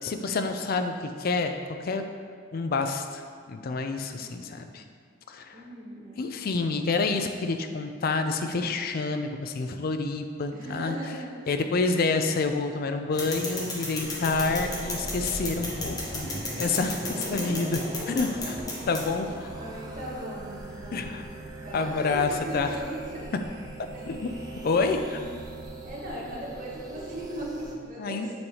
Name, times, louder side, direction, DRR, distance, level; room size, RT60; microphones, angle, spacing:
voice 1, 0.0-1.6 1.8-2.1 2.5-4.8 5.3-5.6 6.2-11.0 11.5-16.3 16.6-19.5 20.9-21.2 21.7-22.8 24.1-24.3 24.6-25.2 28.0-28.3, left 4 dB, 50° left, 7 dB, 0.4 m, -28 dB
voice 2, 4.2-4.6 5.5-6.2 10.5-11.4 16.2-16.4 19.2-21.3 21.6-23.3 23.9-24.1 25.0-25.3 25.8-28.3, right 1 dB, 45° right, -5 dB, 1.3 m, -39 dB
sound 1, 13.1-19.1, left 2 dB, 20° left, 0.8 m, -35 dB
sound 2, 14.0-27.7, right 2 dB, 20° right, 0.7 m, -40 dB
6.9 x 3.3 x 4.2 m, 2.1 s
head